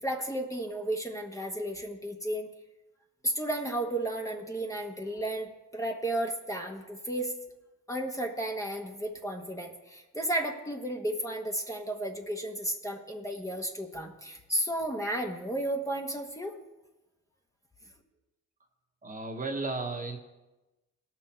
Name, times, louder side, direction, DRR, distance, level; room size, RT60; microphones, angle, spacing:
voice 1, 0.0-2.5 3.2-7.3 7.9-16.5, right 1 dB, 10° left, 2 dB, 1.2 m, -33 dB
voice 2, 19.0-20.2, right 3 dB, 25° right, 3 dB, 1.4 m, -34 dB
17.5 x 6.2 x 4.4 m, 1.1 s
cardioid pair, 90°, 30 cm